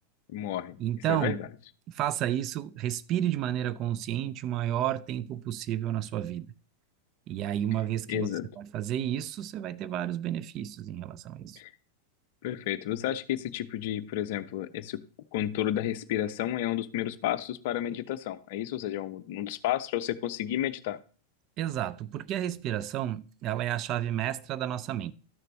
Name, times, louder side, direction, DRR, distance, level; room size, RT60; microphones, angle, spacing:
voice 1, 0.3-0.8 1.1-1.5 8.1-8.5 11.6-11.7 12.4-15.0 15.3-21.0, left 12 dB, 50° left, 0.5 m, -31 dB
voice 2, 0.8-1.4 1.9-6.5 7.3-8.3 8.6-11.6 21.6-25.1, right 11 dB, 35° right, 0.4 m, -31 dB
12.0 x 6.6 x 3.1 m
figure-of-eight pair, 90°, 0 cm